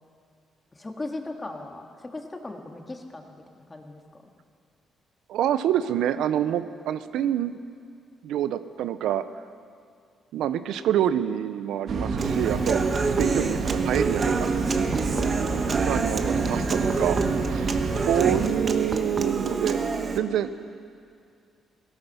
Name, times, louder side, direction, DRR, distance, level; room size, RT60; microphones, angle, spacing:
voice 1, 0.7-4.2 15.1-16.0 16.7-17.0 17.9-18.4, left 2 dB, 20° left, 3 dB, 1.8 m, -39 dB
voice 2, 5.3-7.6 8.2-9.2 10.3-12.8 13.1-14.5 15.9-17.2 17.5-17.7 18.0-19.8 20.2-20.5, right 10 dB, 85° right, 12 dB, 0.6 m, -26 dB
sound 1, 11.9-18.5, right 3 dB, 55° right, 1.5 m, -29 dB
Human voice / Acoustic guitar, 12.2-20.2, right 4 dB, 40° right, 1.2 m, -27 dB
17.5 x 11.0 x 6.9 m, 2.4 s
cardioid pair, 90°, 0 cm